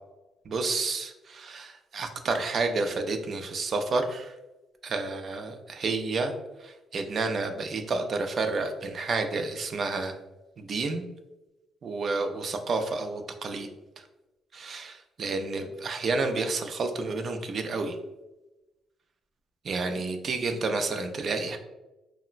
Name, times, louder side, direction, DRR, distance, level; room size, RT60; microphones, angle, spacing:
voice 1, 0.5-4.3 4.8-6.3 6.6-10.1 10.6-11.1 11.8-13.7 14.5-18.0 19.6-21.6, right 3 dB, 50° right, 6 dB, 0.3 m, -30 dB
2.9 x 2.1 x 2.4 m, 1.0 s
cardioid pair, 90°, 0 cm